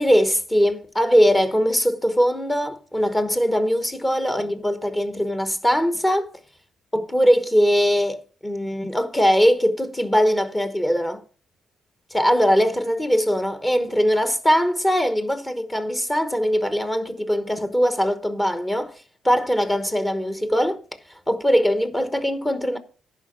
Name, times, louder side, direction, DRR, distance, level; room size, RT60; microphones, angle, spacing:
voice 1, 0.0-6.3 6.9-11.2 12.1-18.9 19.2-20.8 21.3-22.8, equal, 15° left, 1.1 m, -21 dB
11.0 x 5.1 x 7.3 m
cardioid pair, 90°, 0 cm